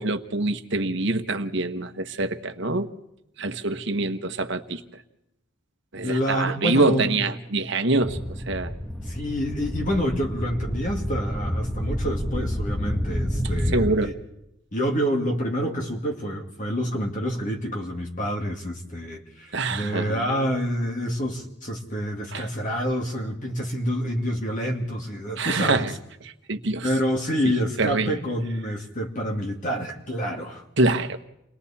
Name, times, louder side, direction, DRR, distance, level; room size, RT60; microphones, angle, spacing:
voice 1, 0.0-2.9 3.4-5.0 5.9-8.2 8.5-8.7 13.7-14.1 19.5-20.5 22.3-22.5 25.4-25.9 26.2-26.9 27.4-28.2 30.8-31.2, right 2 dB, 65° right, 1.3 m, -25 dB
voice 2, 6.0-7.3 9.0-14.1 14.7-25.9 26.8-30.6, equal, 40° left, 2.3 m, -28 dB
sound 1, 8.0-13.9, equal, 5° left, 1.4 m, -29 dB
29.5 x 21.0 x 4.3 m
head